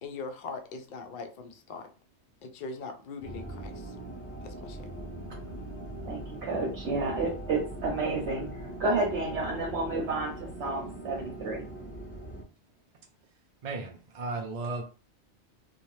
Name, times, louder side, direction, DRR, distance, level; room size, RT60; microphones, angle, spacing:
voice 1, 0.0-1.9 2.4-4.0 4.4-4.9, left 4 dB, 60° left, 6 dB, 0.6 m, -41 dB
sound 1, 3.2-12.4, right 1 dB, 15° left, 0.6 m, -41 dB
voice 2, 6.1-11.7, right 3 dB, 75° right, 0 dB, 0.9 m, -31 dB
voice 3, 13.6-14.8, right 3 dB, 55° right, 2 dB, 0.4 m, -35 dB
2.7 x 2.3 x 3.1 m, 0.36 s
omnidirectional pair, 1.2 m